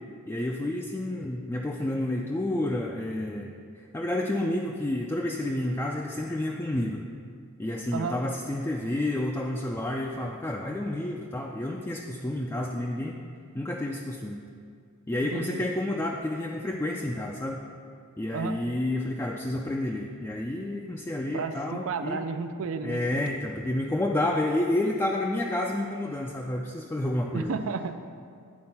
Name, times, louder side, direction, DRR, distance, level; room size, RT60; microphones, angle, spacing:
voice 1, 0.3-7.0 7.6-13.2 13.5-14.4 15.1-17.6 18.2-22.2 22.8-27.5, left 1 dB, 10° left, -1 dB, 0.3 m, -30 dB
voice 2, 15.3-15.6 18.3-18.6 21.3-23.2 27.3-27.9, right 4 dB, 70° right, 9 dB, 0.5 m, -32 dB
9.5 x 4.2 x 5.7 m, 2.2 s
head